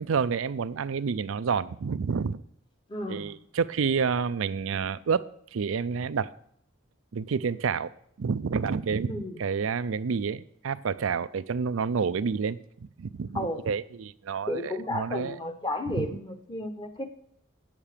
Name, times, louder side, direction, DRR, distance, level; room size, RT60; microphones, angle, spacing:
voice 1, 0.0-2.4 3.1-6.3 7.1-7.9 8.2-12.6 13.0-15.4 15.9-16.1, right 5 dB, 80° right, 0.4 m, -29 dB
voice 2, 2.9-3.3 9.0-9.4 13.3-13.6 14.5-17.0, left 1 dB, 20° left, 1.2 m, -33 dB
9.2 x 7.3 x 6.6 m
head